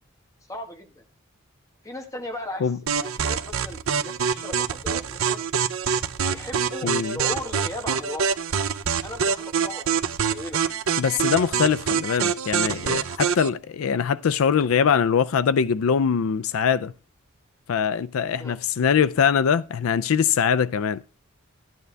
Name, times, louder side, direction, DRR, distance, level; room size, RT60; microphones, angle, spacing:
voice 1, 0.5-1.0 1.8-2.7 2.9-5.4 6.2-8.4 9.0-10.6 18.4-18.6, left 1 dB, 15° left, 1.4 m, -37 dB
sound 1, 2.9-13.5, right 7 dB, 75° right, 0.6 m, -25 dB
voice 2, 6.8-7.2 11.0-16.9 17.7-21.0, left 7 dB, 85° left, 0.4 m, -22 dB
12.0 x 9.3 x 3.3 m
head